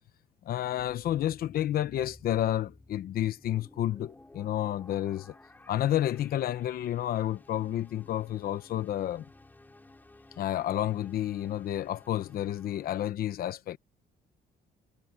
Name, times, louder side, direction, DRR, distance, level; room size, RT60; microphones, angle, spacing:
voice 1, 0.4-5.3 5.7-9.2 10.4-13.8, left 12 dB, 55° left, 0.9 m, -30 dB
sound 1, 0.8-12.9, left 2 dB, 10° left, 5.0 m, -56 dB
cardioid pair, 160°, 18 cm